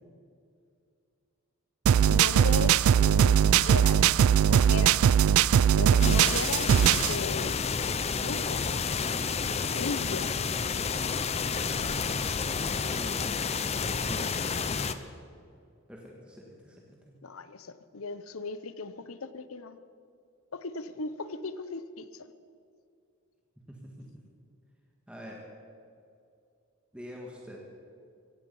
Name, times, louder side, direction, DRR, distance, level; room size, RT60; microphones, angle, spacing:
sound 1, 1.9-7.2, right 8 dB, 75° right, 0.3 m, -21 dB
voice 1, 2.0-4.0 4.5-5.0 5.8-6.7 7.0-7.6 8.2-8.6 9.7-10.3 17.2-19.8 20.5-22.3, left 4 dB, 75° left, 13 dB, 0.8 m, -37 dB
sound 2, 6.0-14.9, left 5 dB, 30° left, 0.5 m, -30 dB
voice 2, 12.9-13.4 13.7-15.1 15.9-17.1 23.7-24.2 25.1-25.4 26.9-27.6, equal, 5° right, -2 dB, 1.6 m, -45 dB
16.0 x 16.0 x 5.5 m, 2.4 s
head